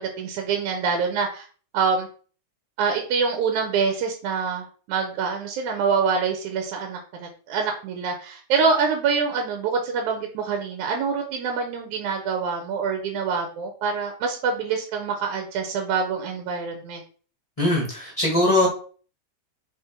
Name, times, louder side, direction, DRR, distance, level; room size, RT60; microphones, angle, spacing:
voice 1, 0.0-1.5 1.7-2.1 2.8-17.0, right 5 dB, 85° right, 3 dB, 2.3 m, -25 dB
voice 2, 17.6-18.7, left 1 dB, 15° left, -3 dB, 1.5 m, -21 dB
5.1 x 4.1 x 4.5 m, 0.41 s
omnidirectional pair, 3.3 m